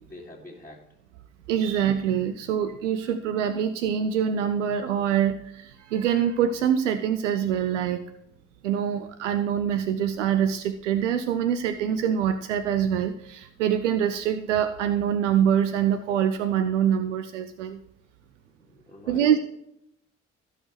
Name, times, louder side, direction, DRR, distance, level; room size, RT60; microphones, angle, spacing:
voice 1, 0.0-0.8 18.5-19.4, left 2 dB, 10° left, -5 dB, 2.2 m, -45 dB
voice 2, 1.5-8.1 8.6-17.8 19.1-19.4, right 9 dB, 80° right, 11 dB, 0.6 m, -25 dB
16.0 x 6.5 x 3.2 m, 0.77 s
figure-of-eight pair, 40°, 36 cm